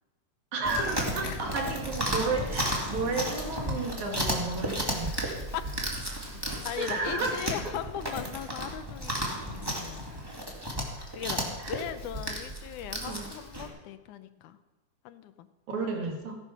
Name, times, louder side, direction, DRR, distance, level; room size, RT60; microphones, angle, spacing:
voice 1, 0.5-5.3 6.1-6.2 6.8-7.7 11.0-11.1 11.6-11.8 13.0-13.3 15.7-16.4, right 3 dB, 70° right, 1 dB, 3.4 m, -32 dB
Chewing mastication, 0.6-13.7, equal, 10° right, 1.9 m, -33 dB
voice 2, 4.9-5.2 5.5-5.6 6.7-10.1 11.1-14.6 15.1-15.5, left 11 dB, 80° left, 11 dB, 2.2 m, -39 dB
16.5 x 10.0 x 5.8 m, 1.1 s
omnidirectional pair, 3.5 m